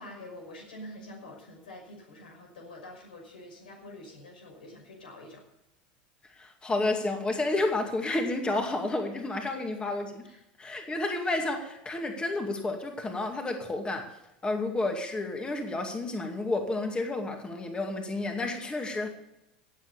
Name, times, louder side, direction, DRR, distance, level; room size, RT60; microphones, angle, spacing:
voice 1, 0.0-5.4 9.5-9.6 10.2-10.4, left 1 dB, 90° left, 1 dB, 5.6 m, -46 dB
voice 2, 6.4-10.2 10.6-14.2 14.4-19.1, left 2 dB, 20° left, 3 dB, 2.3 m, -31 dB
17.0 x 7.7 x 6.9 m, 0.90 s
hypercardioid pair, 90°, 5 cm